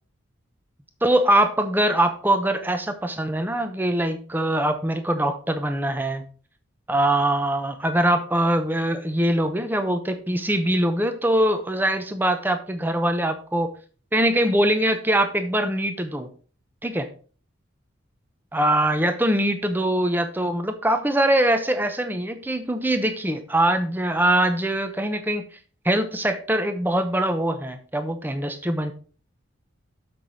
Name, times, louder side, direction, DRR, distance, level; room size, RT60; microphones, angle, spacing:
voice 1, 1.0-6.2 6.9-13.7 14.1-16.3 16.8-17.1 18.5-25.5 25.8-28.9, right 1 dB, 10° right, 8 dB, 0.8 m, -23 dB
7.2 x 6.0 x 4.7 m, 0.40 s
head